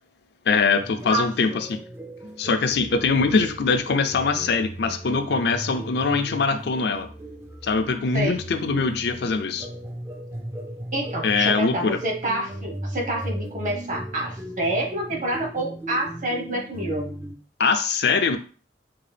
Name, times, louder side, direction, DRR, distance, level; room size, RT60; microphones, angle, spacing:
voice 1, 0.5-1.8 2.4-7.1 7.6-9.7 11.2-12.0 17.6-18.4, left 4 dB, 65° left, 8 dB, 0.4 m, -22 dB
sound 1, 0.8-17.4, right 1 dB, 15° right, 0.3 m, -37 dB
voice 2, 10.9-17.1, right 1 dB, 45° right, 1 dB, 0.9 m, -27 dB
3.7 x 2.4 x 3.3 m, 0.39 s
head